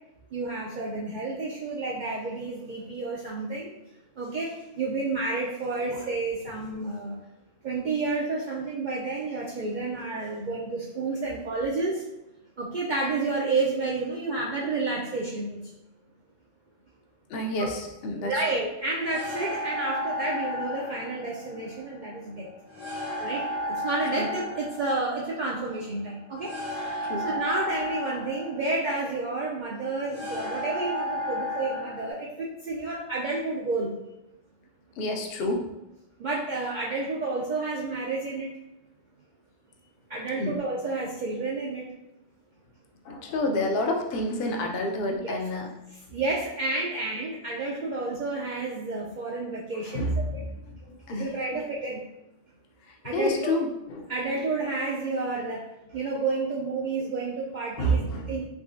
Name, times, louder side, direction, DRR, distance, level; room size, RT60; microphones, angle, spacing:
voice 1, 0.3-3.7 4.2-7.1 7.6-12.0 12.6-15.6 17.6-17.7 18.2-22.5 23.2-23.4 23.7-33.9 36.2-38.5 40.1-41.8 45.2-45.4 46.1-50.4 51.1-52.0 53.0-53.6 54.1-55.6 55.9-58.0 58.3-58.5, right 3 dB, 70° right, -4 dB, 0.4 m, -30 dB
voice 2, 17.3-18.5 24.2-24.3 27.0-27.3 35.0-35.7 40.4-40.6 43.0-45.7 49.8-51.6 52.9-54.1 57.8-58.5, left 1 dB, 60° left, 2 dB, 0.7 m, -29 dB
sound 1, 19.0-32.1, left 1 dB, 85° left, 1.4 m, -34 dB
3.6 x 3.1 x 2.5 m, 0.91 s
omnidirectional pair, 1.3 m